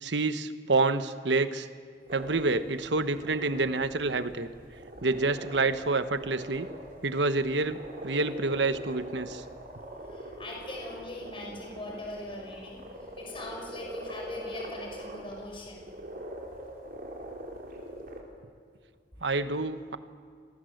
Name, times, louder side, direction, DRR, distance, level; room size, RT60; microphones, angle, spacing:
voice 1, 0.0-1.7 2.1-4.5 5.0-6.7 7.0-9.4 19.2-20.0, right 3 dB, 75° right, 11 dB, 1.2 m, -28 dB
sound 1, 2.1-18.2, right 1 dB, 55° right, 4.1 m, -43 dB
voice 2, 9.5-15.9, left 1 dB, 30° left, -1 dB, 6.5 m, -42 dB
28.0 x 22.0 x 8.0 m, 2.1 s
head